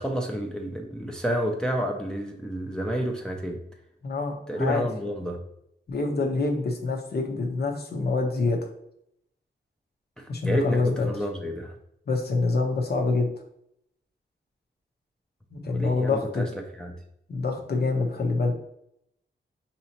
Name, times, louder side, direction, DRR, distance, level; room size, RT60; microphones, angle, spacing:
voice 1, 0.0-3.6 4.5-5.4 10.2-10.8 11.0-11.7 15.7-16.5 16.8-16.9, equal, 5° left, 1 dB, 0.5 m, -30 dB
voice 2, 4.0-4.9 5.9-8.6 10.3-11.1 12.1-13.3 15.5-16.5 17.3-18.5, left 3 dB, 55° left, 1 dB, 0.8 m, -26 dB
5.3 x 2.9 x 2.8 m, 0.75 s
wide cardioid pair, 155°, 19 cm